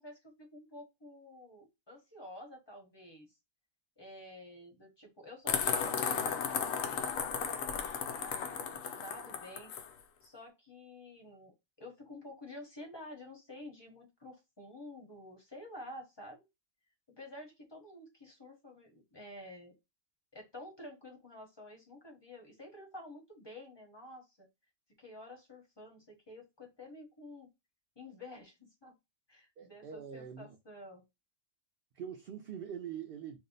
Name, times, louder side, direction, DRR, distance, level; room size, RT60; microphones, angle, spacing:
voice 1, 0.0-3.3 4.0-9.7 10.2-16.4 17.2-19.7 20.3-24.5 25.0-27.5 28.0-28.9 29.3-31.0, left 1 dB, 25° left, 0.7 m, -50 dB
sound 1, 5.5-9.9, left 7 dB, 75° left, 1.0 m, -34 dB
voice 2, 29.6-30.6 31.9-33.4, right 8 dB, 65° right, 0.6 m, -43 dB
2.6 x 2.1 x 3.7 m
omnidirectional pair, 1.4 m